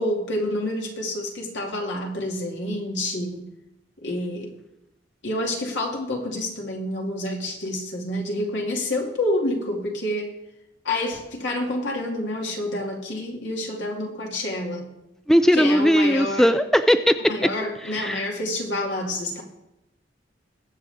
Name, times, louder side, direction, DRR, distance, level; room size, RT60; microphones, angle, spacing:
voice 1, 0.0-3.5 4.0-4.5 5.2-10.3 10.8-14.9 15.5-16.5 17.3-19.4, left 1 dB, 75° left, 0 dB, 2.5 m, -28 dB
voice 2, 15.3-17.2 17.8-18.3, equal, ahead, 9 dB, 0.4 m, -18 dB
21.5 x 7.6 x 3.6 m, 0.86 s
head